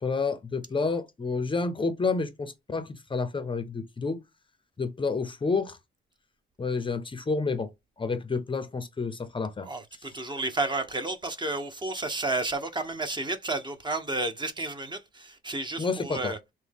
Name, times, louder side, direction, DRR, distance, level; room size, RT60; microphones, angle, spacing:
voice 1, 0.0-4.2 4.8-5.8 6.6-7.7 8.0-9.7 15.8-16.3, left 4 dB, 25° left, 0.7 m, -29 dB
voice 2, 9.6-16.4, right 2 dB, 20° right, 0.9 m, -31 dB
5.9 x 2.2 x 3.5 m
cardioid pair, 90°, 20 cm